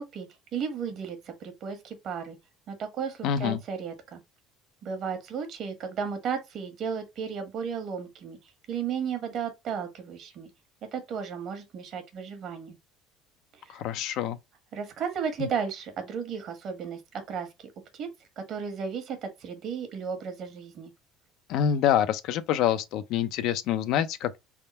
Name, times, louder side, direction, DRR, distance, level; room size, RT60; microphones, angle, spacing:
voice 1, 0.0-2.4 2.7-4.2 4.8-8.4 8.7-10.5 10.9-12.8 13.5-13.8 14.7-18.1 18.4-20.9, right 6 dB, 50° right, 1.2 m, -34 dB
voice 2, 3.2-3.6 13.7-14.4 15.4-15.5 21.5-24.4, left 9 dB, 70° left, 0.5 m, -26 dB
3.5 x 2.2 x 4.2 m
cardioid pair, 120°, 0 cm